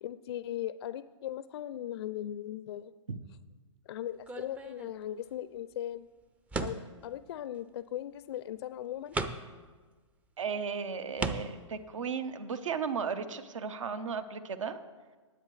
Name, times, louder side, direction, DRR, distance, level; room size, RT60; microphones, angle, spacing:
voice 1, 0.0-2.9 3.9-6.1 6.6-9.2, left 12 dB, 55° left, 15 dB, 0.4 m, -38 dB
sound 1, 4.3-5.2 6.5-7.0 8.3-8.4 9.1-9.6 10.4-10.5 11.2-11.7, right 3 dB, 10° right, 0.4 m, -36 dB
voice 2, 10.4-14.8, right 6 dB, 75° right, 11 dB, 1.0 m, -35 dB
19.0 x 8.0 x 3.2 m, 1.4 s
hypercardioid pair, 140°, 16 cm